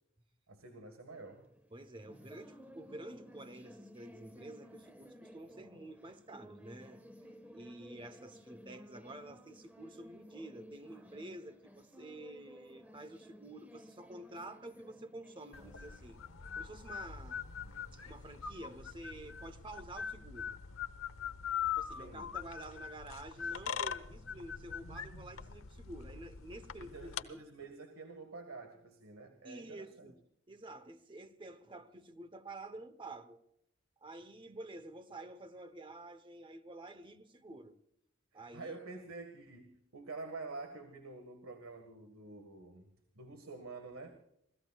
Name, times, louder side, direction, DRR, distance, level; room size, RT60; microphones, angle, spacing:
voice 1, 0.5-1.5 22.0-22.3 26.8-30.1 38.3-42.9 43.1-44.1, right 3 dB, 90° right, 1.7 m, -48 dB
sound 1, 1.1-19.5, equal, 10° right, 1.4 m, -57 dB
voice 2, 1.7-7.0 7.5-16.2 16.6-17.4 17.9-20.6 21.7-27.4 29.4-30.2 30.5-33.4 34.0-37.8 38.3-38.8, right 1 dB, 25° right, 1.0 m, -49 dB
sound 2, 15.5-27.2, left 7 dB, 85° left, 1.0 m, -42 dB
27.5 x 17.0 x 2.4 m
head